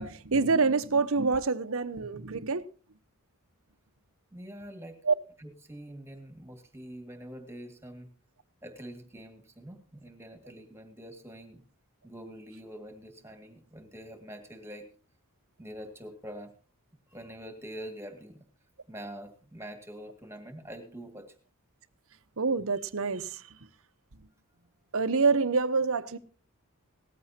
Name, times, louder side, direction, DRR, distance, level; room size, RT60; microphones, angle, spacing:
voice 1, 0.0-2.7 5.0-5.1 22.4-23.6 24.9-26.2, right 4 dB, 65° right, 0.9 m, -26 dB
voice 2, 4.3-5.0 5.4-8.1 8.6-11.6 12.0-14.9 15.6-16.5 17.1-18.4 18.9-21.3, equal, 10° right, 2.0 m, -45 dB
18.5 x 14.5 x 2.8 m
head